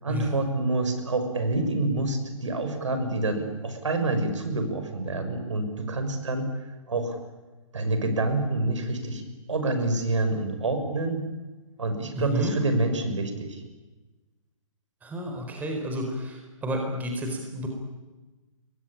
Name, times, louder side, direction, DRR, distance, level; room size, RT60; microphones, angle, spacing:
voice 1, 0.0-6.5 6.9-7.2 7.7-9.2 9.5-11.3 11.8-13.6, right 2 dB, 60° right, 7 dB, 6.4 m, -27 dB
voice 2, 12.1-12.5 15.0-17.7, equal, 10° right, 2 dB, 4.5 m, -31 dB
28.5 x 22.5 x 9.0 m, 1.2 s
figure-of-eight pair, 130°, 17 cm